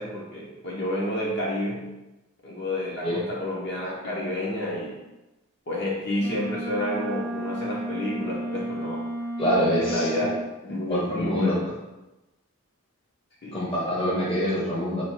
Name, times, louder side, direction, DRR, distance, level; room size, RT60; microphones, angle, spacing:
voice 1, 0.0-1.9 2.4-5.0 5.7-9.0 9.8-10.3 10.6-11.6 13.4-13.6, left 1 dB, 50° left, -4 dB, 1.0 m, -30 dB
Wind instrument woodwind instrument, 6.2-10.5, right 1 dB, 45° right, 0.5 m, -33 dB
voice 2, 9.4-10.3 10.9-11.6 13.5-15.0, equal, 25° left, -6 dB, 0.9 m, -25 dB
4.4 x 2.5 x 4.5 m, 1.0 s
head